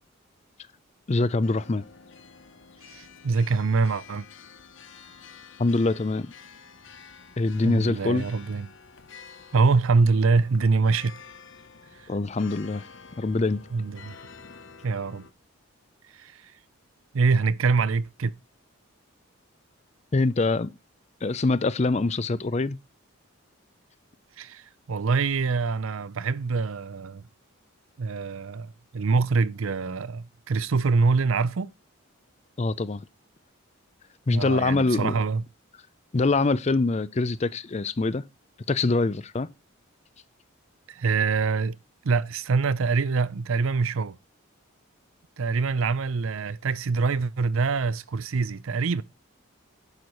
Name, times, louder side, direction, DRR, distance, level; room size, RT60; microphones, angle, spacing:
voice 1, 1.1-1.8 5.6-6.3 7.4-8.2 12.1-12.9 13.2-13.6 20.1-20.8 21.2-22.8 32.6-33.0 34.3-35.2 36.1-38.2 38.7-39.5, left 3 dB, 30° left, 0.4 m, -24 dB
sound 1, 1.4-15.3, left 5 dB, 60° left, 0.9 m, -49 dB
voice 2, 2.9-4.2 7.6-8.7 9.5-11.1 13.7-14.2 14.8-15.3 16.2-16.5 17.1-18.3 24.4-24.6 24.9-27.2 28.0-31.7 34.3-35.4 40.9-41.8 42.0-44.2 45.4-49.0, right 4 dB, 70° right, 0.5 m, -24 dB
10.5 x 4.7 x 5.4 m
head